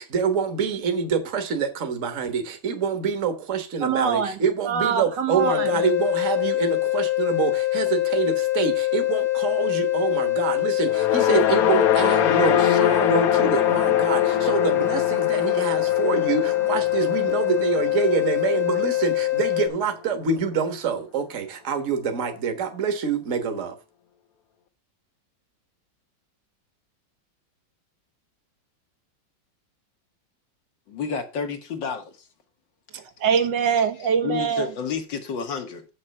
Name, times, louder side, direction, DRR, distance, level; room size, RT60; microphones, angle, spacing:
voice 1, 0.0-23.7, right 6 dB, 45° right, 1.5 m, -26 dB
voice 2, 3.8-4.4 4.6-5.7 32.9-34.7, right 7 dB, 75° right, 1.8 m, -23 dB
sound 1, 5.4-19.7, left 16 dB, 35° left, 1.2 m, -24 dB
sound 2, 10.9-19.2, left 9 dB, 60° left, 1.2 m, -24 dB
voice 3, 30.9-32.1 34.2-35.9, left 6 dB, 80° left, 2.2 m, -30 dB
7.5 x 6.4 x 5.5 m
omnidirectional pair, 2.0 m